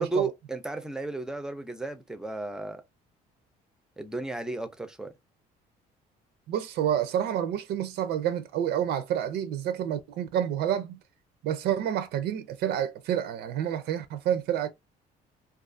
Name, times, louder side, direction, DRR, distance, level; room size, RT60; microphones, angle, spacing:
voice 1, 0.0-2.8 4.0-5.1, right 3 dB, 5° right, 0.4 m, -33 dB
voice 2, 6.5-11.0 11.4-14.7, right 10 dB, 75° right, 0.4 m, -29 dB
2.4 x 2.3 x 2.4 m
cardioid pair, 110°, 17 cm